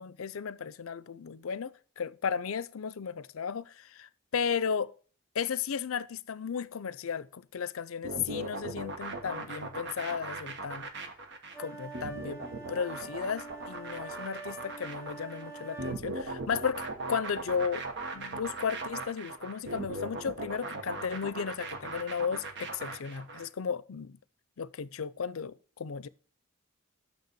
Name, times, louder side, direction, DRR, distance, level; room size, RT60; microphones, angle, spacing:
voice 1, 0.0-4.9 5.3-10.9 11.6-17.8 18.1-24.1 24.6-26.1, left 6 dB, 75° left, 0.5 m, -35 dB
sound 1, 8.0-23.5, right 2 dB, 55° right, 1.2 m, -39 dB
sound 2, 11.5-16.0, right 4 dB, 15° right, 1.4 m, -45 dB
6.7 x 6.4 x 6.9 m
head